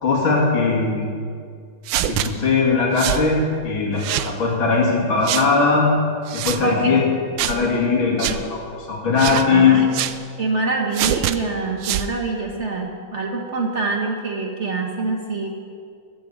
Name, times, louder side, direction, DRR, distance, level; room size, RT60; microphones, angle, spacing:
voice 1, 0.0-1.1 2.1-5.9 6.3-7.0 7.4-8.6 8.9-9.8, left 4 dB, 80° left, -3 dB, 3.4 m, -19 dB
sound 1, 1.9-2.3 3.0-3.2 4.0-4.3 5.2-5.5 6.3-6.6 7.4-7.6 8.2-8.4 9.2-9.5 9.9-10.2 10.9-11.4 11.8-12.1, right 12 dB, 80° right, 1.3 m, -24 dB
voice 2, 6.6-7.0 9.5-9.9 10.4-15.5, right 3 dB, 40° right, 1 dB, 1.2 m, -25 dB
14.0 x 8.9 x 7.3 m, 2.3 s
omnidirectional pair, 2.2 m